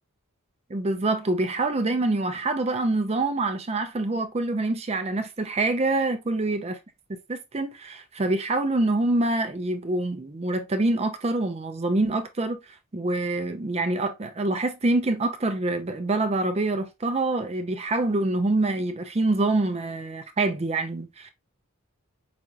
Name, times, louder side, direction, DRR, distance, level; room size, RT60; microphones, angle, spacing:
voice 1, 0.7-6.8 7.3-12.6 12.9-21.3, right 2 dB, 30° right, 0.5 m, -25 dB
5.0 x 2.8 x 2.3 m
head